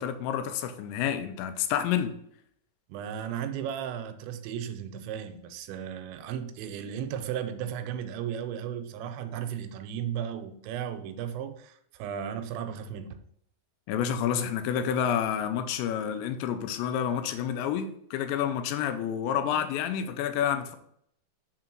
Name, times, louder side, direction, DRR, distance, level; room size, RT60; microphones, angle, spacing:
voice 1, 0.0-2.1 13.9-20.8, left 9 dB, 85° left, 2.9 m, -29 dB
voice 2, 2.9-13.2, right 9 dB, 90° right, 3.0 m, -35 dB
6.6 x 3.8 x 6.0 m
omnidirectional pair, 5.1 m